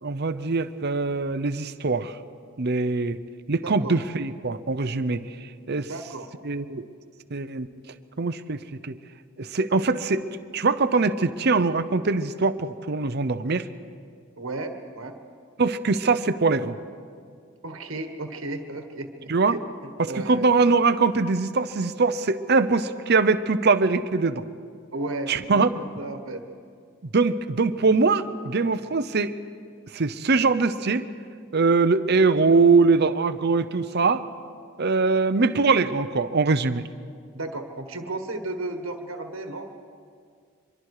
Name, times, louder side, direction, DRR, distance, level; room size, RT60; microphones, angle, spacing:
voice 1, 0.0-2.1 2.6-3.2 3.5-5.9 6.4-6.9 7.3-7.7 8.2-9.0 9.4-10.3 10.5-13.7 15.6-16.8 19.3-19.6 20.0-24.4 25.3-25.8 27.1-29.4 29.9-31.1 31.5-34.2 34.8-36.9, right 4 dB, 50° right, 11 dB, 0.8 m, -22 dB
voice 2, 3.6-4.0 5.8-6.3 14.4-15.2 17.6-19.6 20.1-20.5 24.9-26.5 32.1-32.2 37.3-39.7, right 2 dB, 75° right, 5 dB, 1.5 m, -34 dB
25.0 x 23.0 x 4.9 m, 2.2 s
head